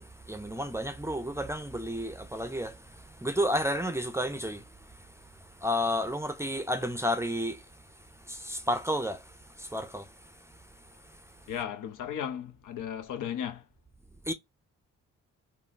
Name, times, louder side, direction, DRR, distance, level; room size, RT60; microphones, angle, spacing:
voice 1, 0.0-2.8 3.2-4.6 5.6-7.6 8.3-9.2 9.6-10.1 14.3-14.4, equal, 10° right, 0.5 m, -31 dB
voice 2, 11.5-13.7, left 9 dB, 65° left, 0.7 m, -35 dB
3.6 x 2.0 x 2.5 m
supercardioid pair, 55°, 34 cm